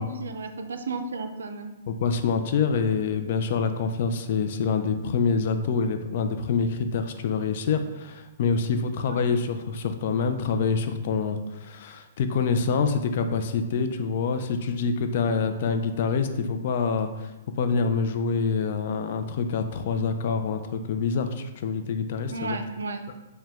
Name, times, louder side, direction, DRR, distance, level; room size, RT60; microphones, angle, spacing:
voice 1, 0.0-1.7 9.0-9.2 22.3-23.1, right 3 dB, 85° right, 7 dB, 0.4 m, -33 dB
voice 2, 1.9-17.3 17.6-22.6, left 5 dB, 55° left, 8 dB, 0.4 m, -26 dB
4.7 x 2.2 x 3.5 m, 1.1 s
hypercardioid pair, 140°, 0 cm